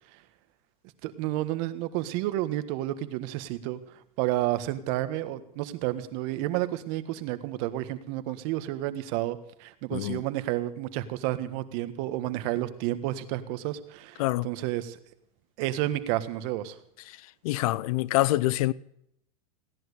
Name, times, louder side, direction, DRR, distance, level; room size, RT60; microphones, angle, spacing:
voice 1, 1.0-15.0 15.6-16.8, right 15 dB, 60° right, 1.6 m, -31 dB
voice 2, 17.4-18.7, left 18 dB, 70° left, 0.7 m, -25 dB
17.0 x 11.0 x 6.7 m
supercardioid pair, 125°, 19 cm